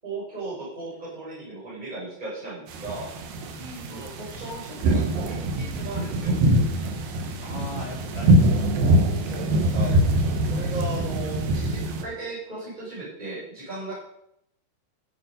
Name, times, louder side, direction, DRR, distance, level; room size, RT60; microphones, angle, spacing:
voice 1, 0.0-3.1 3.9-6.3 9.2-10.0 10.5-13.9, right 2 dB, 10° right, -7 dB, 6.9 m, -36 dB
sound 1, 2.7-12.0, right 1 dB, 80° right, 3.5 m, -23 dB
voice 2, 3.6-4.1 7.4-9.6, left 1 dB, 10° left, -4 dB, 3.8 m, -40 dB
15.5 x 9.8 x 5.4 m, 0.74 s
omnidirectional pair, 4.6 m